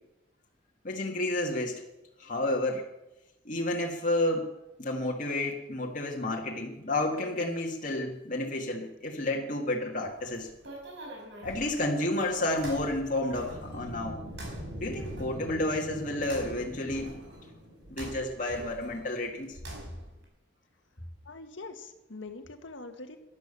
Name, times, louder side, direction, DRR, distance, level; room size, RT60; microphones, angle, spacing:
voice 1, 0.8-1.8 2.2-2.9 3.5-4.5 4.8-10.5 11.4-14.2 14.8-17.2 17.9-19.6, left 1 dB, 45° left, -1 dB, 2.1 m, -31 dB
sound 1, 10.0-20.2, right 1 dB, 70° right, 5.0 m, -46 dB
sound 2, 13.4-18.3, equal, 50° right, 6.3 m, -43 dB
voice 2, 21.2-23.2, left 3 dB, 85° left, 7 dB, 1.6 m, -43 dB
12.5 x 12.0 x 6.9 m, 0.93 s
head